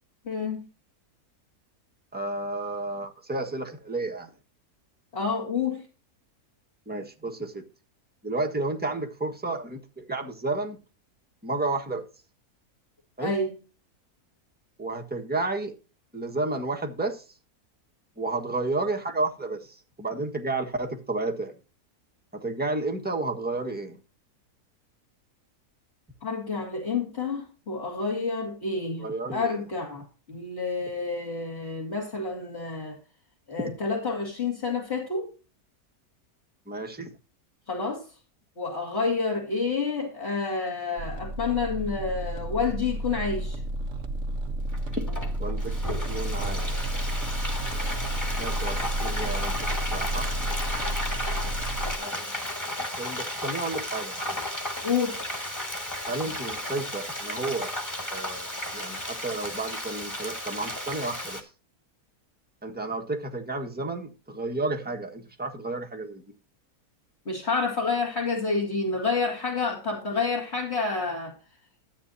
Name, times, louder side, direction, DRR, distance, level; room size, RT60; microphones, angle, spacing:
voice 1, 0.3-0.6 5.1-5.8 13.2-13.5 26.2-29.1 29.3-33.0 33.5-35.3 37.7-38.0 38.6-43.6 54.8-55.2 67.3-71.3, left 4 dB, 40° left, 2.6 m, -29 dB
voice 2, 2.1-4.3 6.9-7.6 8.2-10.8 11.4-12.1 13.2-13.3 14.8-15.7 16.1-17.2 18.2-21.5 22.3-24.0 29.0-29.6 36.7-37.1 45.0-45.1 45.4-46.7 48.4-50.3 52.0-52.4 52.8-54.6 56.1-57.7 58.1-61.5 62.6-66.2, right 2 dB, 5° right, 1.4 m, -32 dB
sound 1, 41.0-51.9, right 1 dB, 55° right, 1.5 m, -31 dB
Frying (food), 44.7-61.4, left 1 dB, 10° left, 1.9 m, -34 dB
13.5 x 8.9 x 2.7 m
omnidirectional pair, 1.6 m